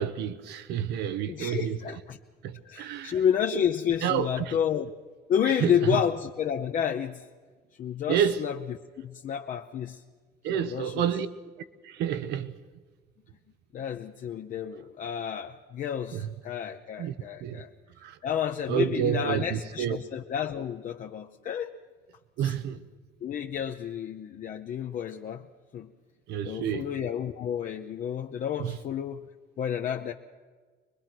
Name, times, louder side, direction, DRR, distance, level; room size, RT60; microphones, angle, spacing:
voice 1, 0.0-1.8 2.4-3.1 4.0-4.6 5.6-6.0 8.1-8.5 10.4-11.3 11.8-12.5 16.1-16.3 17.0-17.1 17.4-17.6 18.0-18.2 18.7-20.0 22.4-22.8 26.3-26.9 28.6-28.7, right 9 dB, 80° right, 0.9 m, -29 dB
voice 2, 1.3-2.2 2.6-4.9 5.3-7.3 7.7-10.0 10.5-11.1 13.7-17.7 18.2-21.8 22.4-22.5 23.2-25.5 25.7-25.9 26.4-29.3 29.6-30.1, left 9 dB, 50° left, 0.7 m, -30 dB
23.5 x 20.5 x 6.1 m
cardioid pair, 110°, 17 cm